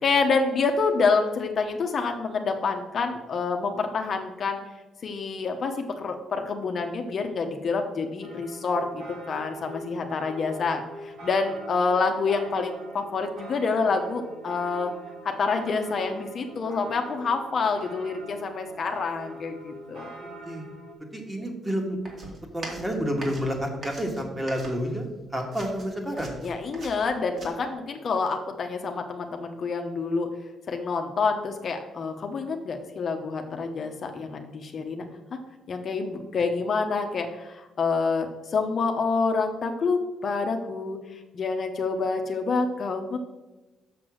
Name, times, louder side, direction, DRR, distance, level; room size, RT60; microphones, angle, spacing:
voice 1, 0.0-4.6 5.0-14.9 15.2-20.1 26.4-30.3 30.7-35.1 35.3-35.4 35.7-43.2, left 4 dB, 50° left, 4 dB, 1.0 m, -27 dB
sound 1, 8.2-20.9, right 2 dB, 80° right, 2.8 m, -43 dB
voice 2, 20.0-20.6 21.1-22.0 22.5-25.1 25.3-26.4, equal, 15° right, 2 dB, 1.9 m, -30 dB
sound 2, 22.0-25.1 25.4-27.5, right 2 dB, 45° right, 2.6 m, -42 dB
6.8 x 6.0 x 6.3 m, 1.1 s
cardioid pair, 90°, 0 cm